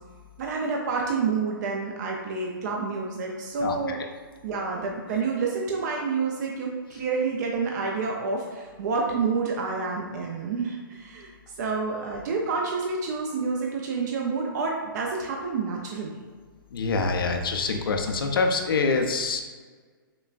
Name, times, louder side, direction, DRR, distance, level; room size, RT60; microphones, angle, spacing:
voice 1, 0.4-4.0 4.4-16.2, right 4 dB, 50° right, 0 dB, 0.5 m, -29 dB
voice 2, 3.6-4.0 16.7-19.4, left 4 dB, 75° left, 4 dB, 0.6 m, -25 dB
5.9 x 2.2 x 2.5 m, 1.5 s
hypercardioid pair, 140°, 12 cm